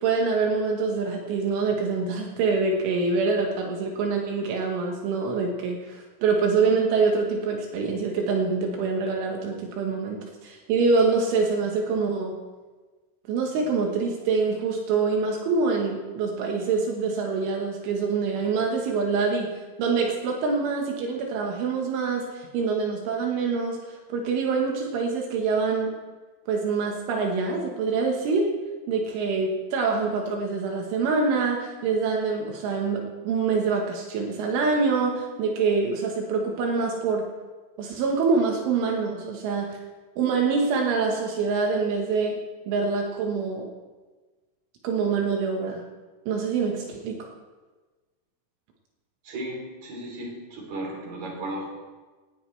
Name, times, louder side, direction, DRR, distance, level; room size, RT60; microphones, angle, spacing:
voice 1, 0.0-12.4 13.3-25.9 26.5-28.5 28.9-37.2 37.8-39.8 40.2-42.4 42.7-43.7 44.8-45.8 46.3-47.3, right 4 dB, 80° right, 1 dB, 3.9 m, -25 dB
voice 2, 49.2-51.7, right 1 dB, 40° right, -1 dB, 4.4 m, -35 dB
19.0 x 18.5 x 3.4 m, 1.3 s
omnidirectional pair, 5.6 m